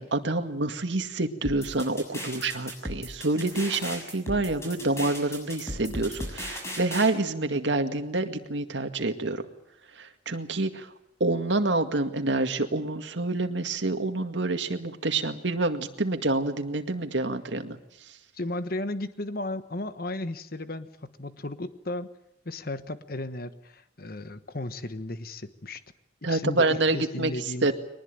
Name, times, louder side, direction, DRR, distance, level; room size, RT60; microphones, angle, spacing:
voice 1, 0.0-9.4 10.0-10.9 11.2-17.8 26.2-27.3 27.6-27.7, right 2 dB, 85° right, 6 dB, 2.0 m, -27 dB
sound 1, 1.4-7.1, equal, 15° left, 6.7 m, -36 dB
voice 2, 18.3-22.1 22.4-25.8 26.2-27.7, left 2 dB, 55° left, 12 dB, 1.3 m, -35 dB
22.5 x 20.0 x 9.0 m, 0.79 s
head